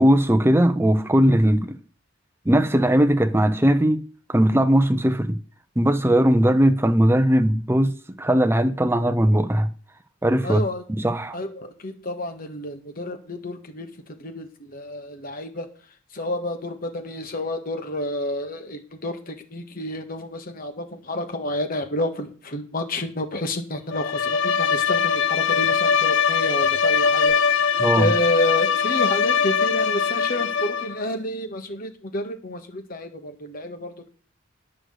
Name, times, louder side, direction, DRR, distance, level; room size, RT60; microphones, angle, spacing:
voice 1, 0.0-1.8 2.5-4.0 4.3-5.4 5.8-9.7 10.2-10.6 10.9-11.4 27.8-28.1, equal, 10° right, 0.7 m, -19 dB
voice 2, 10.4-10.8 11.3-13.9 14.2-15.7 16.1-34.1, left 1 dB, 45° left, 1.8 m, -30 dB
Bowed string instrument, 23.9-31.0, left 6 dB, 65° left, 0.7 m, -21 dB
9.9 x 6.4 x 7.8 m
head